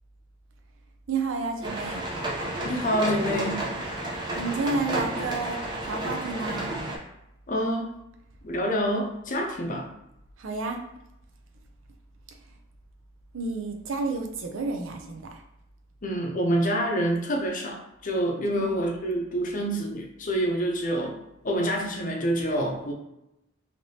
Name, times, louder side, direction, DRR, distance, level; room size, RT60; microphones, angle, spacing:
voice 1, 1.1-2.0 4.4-6.7 10.4-10.8 13.3-15.4 18.5-18.9, right 3 dB, 75° right, 4 dB, 0.5 m, -31 dB
sound 1, 1.6-7.0, right 1 dB, 20° right, 0.6 m, -31 dB
voice 2, 2.6-3.7 7.5-7.9 8.4-9.9 16.0-21.2 21.4-22.9, equal, 40° left, 1 dB, 0.6 m, -27 dB
3.2 x 2.8 x 2.7 m, 0.86 s
head